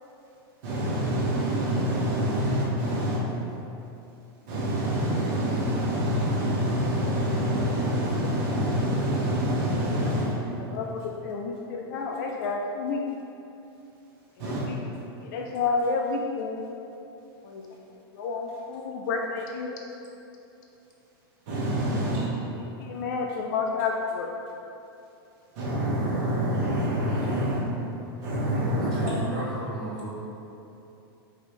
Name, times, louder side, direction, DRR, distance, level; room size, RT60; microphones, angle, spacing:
voice 1, 0.6-3.2 4.5-10.3 14.4-14.7 21.5-22.2 25.6-27.6 28.2-29.2, equal, 45° right, -6 dB, 1.0 m, -26 dB
voice 2, 10.0-13.0 14.4-14.8 15.2-16.7 17.4-17.7 18.1-19.8 22.5-24.3, left 4 dB, 50° left, 0 dB, 0.4 m, -30 dB
voice 3, 28.8-30.1, right 1 dB, 5° left, -14 dB, 1.5 m, -35 dB
5.0 x 2.7 x 3.1 m, 2.8 s
supercardioid pair, 155°, 13 cm